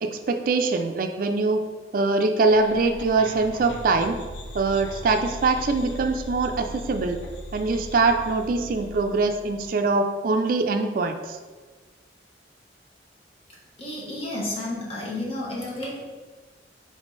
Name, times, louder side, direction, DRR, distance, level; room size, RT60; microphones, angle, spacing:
voice 1, 0.0-1.6 1.9-4.2 4.5-7.2 7.5-11.4, right 3 dB, 50° right, 5 dB, 0.4 m, -23 dB
sound 1, 2.5-9.7, left 1 dB, 90° left, 0.5 m, -39 dB
voice 2, 13.8-16.0, left 1 dB, 35° left, -4 dB, 1.1 m, -31 dB
3.6 x 3.4 x 3.8 m, 1.4 s
head